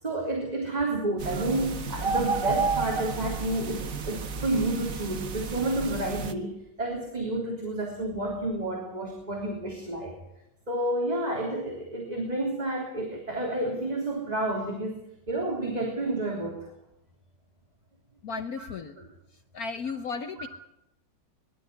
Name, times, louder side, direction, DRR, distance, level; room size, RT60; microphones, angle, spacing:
voice 1, 0.0-10.1 10.7-16.7 18.6-18.7 19.0-19.1 20.4-20.5, right 1 dB, 20° right, 0 dB, 3.5 m, -30 dB
sound 1, 1.2-6.3, right 5 dB, 50° right, 1.7 m, -31 dB
voice 2, 18.2-18.9 19.5-20.5, left 5 dB, 60° left, 9 dB, 1.3 m, -34 dB
23.0 x 12.5 x 10.0 m, 0.84 s
omnidirectional pair, 2.0 m